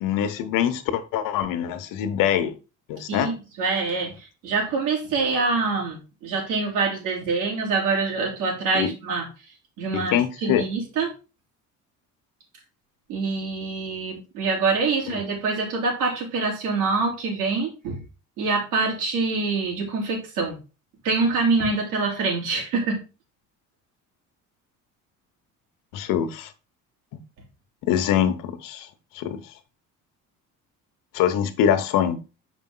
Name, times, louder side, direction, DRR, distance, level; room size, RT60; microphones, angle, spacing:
voice 1, 0.0-2.6 2.9-3.3 8.7-8.9 9.9-10.6 15.1-15.2 25.9-26.5 27.9-28.9 29.1-29.4 31.1-32.2, left 9 dB, 85° left, 10 dB, 1.0 m, -24 dB
voice 2, 3.1-9.2 9.8-11.1 13.1-18.0 18.4-20.6 21.0-23.0, right 4 dB, 80° right, -1 dB, 3.3 m, -25 dB
6.3 x 5.1 x 3.8 m, 0.31 s
cardioid pair, 155°, 32 cm